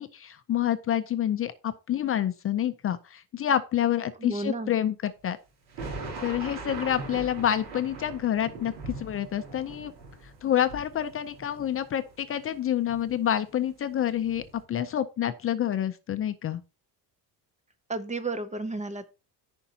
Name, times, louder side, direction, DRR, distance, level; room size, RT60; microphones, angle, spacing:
voice 1, 0.0-5.4 6.2-9.9 10.4-16.6, left 10 dB, 30° left, 0.5 m, -28 dB
voice 2, 4.2-4.7 17.9-19.1, right 2 dB, 15° right, 0.6 m, -32 dB
sound 1, 5.7-12.4 12.8-13.6 14.0-14.6, right 3 dB, 80° right, 3.8 m, -41 dB
14.0 x 5.3 x 2.8 m
cardioid pair, 160°, 43 cm